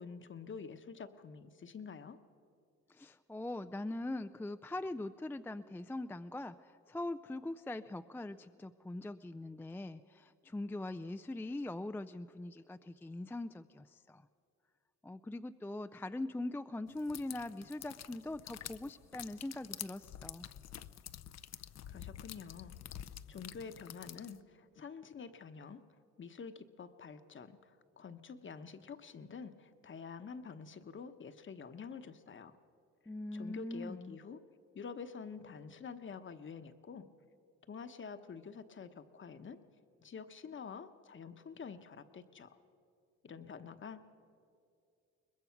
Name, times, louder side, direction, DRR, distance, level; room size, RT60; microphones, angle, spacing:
voice 1, 0.0-2.2 21.9-25.8 26.2-32.5 33.3-34.4 34.7-37.1 37.7-39.6 40.0-42.6 43.2-44.1, left 5 dB, 40° left, 10 dB, 1.1 m, -48 dB
voice 2, 2.9-14.3 15.0-20.5 33.1-34.2, left 2 dB, 5° left, 10 dB, 0.4 m, -42 dB
sound 1, 17.0-24.4, left 11 dB, 60° left, 0.7 m, -48 dB
22.0 x 20.5 x 5.9 m, 2.5 s
cardioid pair, 90°, 30 cm